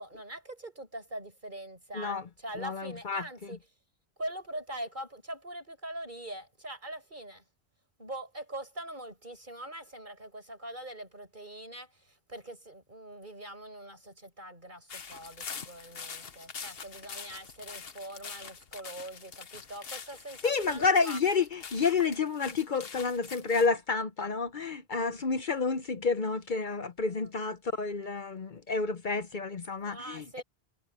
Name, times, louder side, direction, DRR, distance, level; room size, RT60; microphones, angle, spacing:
voice 1, 0.0-3.6 4.2-7.4 8.0-21.2 27.1-27.3 29.8-30.4, right 1 dB, 50° right, 7.4 m, -43 dB
voice 2, 1.9-2.3 2.6-3.6 20.4-30.4, left 4 dB, 55° left, 1.0 m, -30 dB
sound 1, 14.9-23.7, left 6 dB, 70° left, 1.4 m, -44 dB
omnidirectional pair, 1.0 m